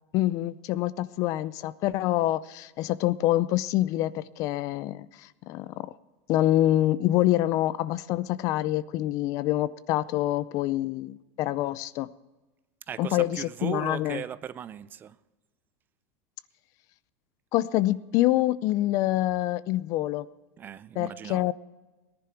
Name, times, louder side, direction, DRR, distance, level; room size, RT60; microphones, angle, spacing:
voice 1, 0.1-5.9 6.3-12.1 13.0-14.2 17.5-20.3 21.0-21.5, left 15 dB, 45° left, 0.5 m, -26 dB
voice 2, 12.9-15.2 20.6-21.5, right 9 dB, 25° right, 0.4 m, -37 dB
18.5 x 10.5 x 4.5 m
supercardioid pair, 135°, 8 cm